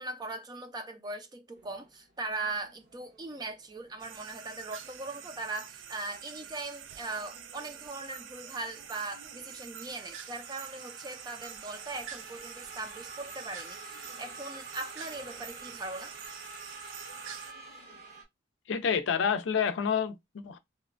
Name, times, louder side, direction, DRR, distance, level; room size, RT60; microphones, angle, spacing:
voice 1, 0.0-16.1, right 2 dB, 20° right, 0.4 m, -40 dB
sound 1, 1.5-18.2, right 2 dB, 55° right, 0.8 m, -51 dB
sound 2, 4.0-17.5, right 8 dB, 85° right, 0.4 m, -46 dB
voice 2, 18.7-20.6, left 7 dB, 80° left, 0.4 m, -28 dB
2.8 x 2.1 x 2.5 m
head